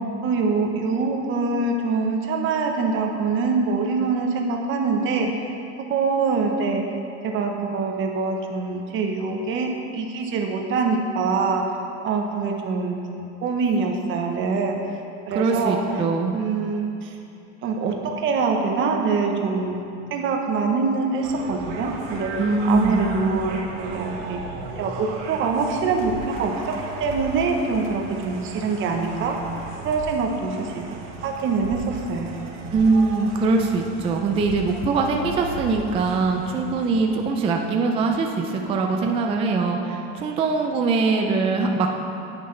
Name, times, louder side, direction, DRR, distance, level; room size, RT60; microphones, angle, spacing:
voice 1, 0.2-5.4 5.9-6.8 7.2-11.8 12.0-15.0 15.3-15.8 16.3-17.2 17.6-19.8 20.1-22.3 22.7-24.4 24.8-26.7 27.0-29.4 29.8-30.8 31.2-32.3, right 4 dB, 35° right, 2 dB, 0.9 m, -24 dB
voice 2, 15.3-16.4 22.4-23.2 32.7-41.9, right 3 dB, 15° right, 2 dB, 0.3 m, -22 dB
sound 1, 21.2-37.1, right 4 dB, 75° right, 1.3 m, -36 dB
9.3 x 8.0 x 3.2 m, 2.7 s
supercardioid pair, 140°, 36 cm